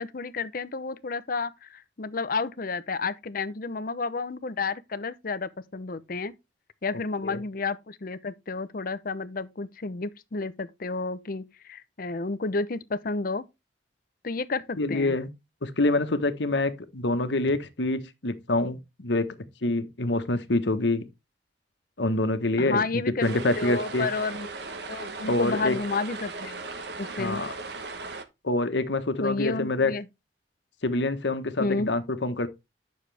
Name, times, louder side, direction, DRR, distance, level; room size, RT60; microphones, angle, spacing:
voice 1, 0.0-6.3 6.8-13.5 14.2-15.2 22.6-24.5 24.9-26.7 27.0-27.4 29.2-30.1 31.6-31.9, left 3 dB, 50° left, 0.7 m, -31 dB
voice 2, 14.8-15.3 15.6-19.3 19.6-21.0 22.0-24.1 25.3-25.8 27.2-27.5 28.4-29.9 30.8-32.5, left 2 dB, 75° left, 1.2 m, -26 dB
sound 1, 23.2-28.2, right 3 dB, 65° right, 1.2 m, -37 dB
9.6 x 6.5 x 3.4 m
head